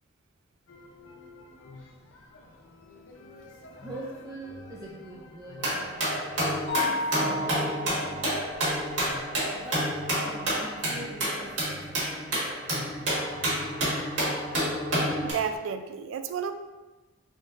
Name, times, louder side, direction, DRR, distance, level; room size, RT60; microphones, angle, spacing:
sound 1, 0.7-15.6, left 2 dB, 75° left, 0.5 m, -48 dB
voice 1, 3.7-6.0 6.8-8.3 8.5-8.8 9.5-9.9 10.2-13.1, right 2 dB, 20° right, -4 dB, 0.4 m, -43 dB
sound 2, 5.6-15.3, right 1 dB, 70° right, 1.5 m, -29 dB
Mallet percussion, 6.7-8.5, left 3 dB, 30° left, 0.7 m, -32 dB
voice 2, 15.2-16.5, right 7 dB, 90° right, 8 dB, 0.3 m, -31 dB
3.7 x 3.7 x 2.5 m, 1.2 s
head